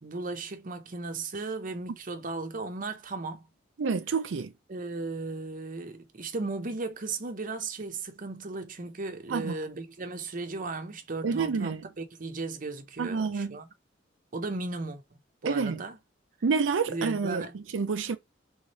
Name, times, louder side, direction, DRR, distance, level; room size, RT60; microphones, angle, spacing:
voice 1, 0.0-3.5 4.7-13.7 14.3-15.0 15.4-16.0 16.9-17.5, right 3 dB, 45° right, 0.7 m, -36 dB
voice 2, 3.8-4.5 9.3-9.6 11.2-11.9 13.0-13.6 15.4-15.8 16.4-18.2, right 5 dB, 80° right, 0.5 m, -28 dB
3.6 x 3.2 x 4.1 m
head